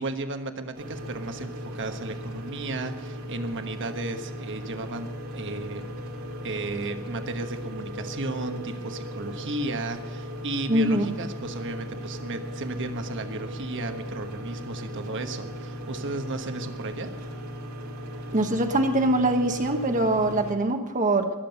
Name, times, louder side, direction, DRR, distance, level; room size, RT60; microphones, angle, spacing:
voice 1, 0.0-5.1 5.3-5.8 6.4-17.1, right 2 dB, 60° right, 7 dB, 1.3 m, -34 dB
sound 1, 0.7-20.5, equal, 75° right, 2.6 m, -37 dB
voice 2, 10.7-11.1 18.3-21.3, right 1 dB, 35° right, 5 dB, 1.1 m, -23 dB
21.5 x 7.6 x 6.8 m, 1.2 s
head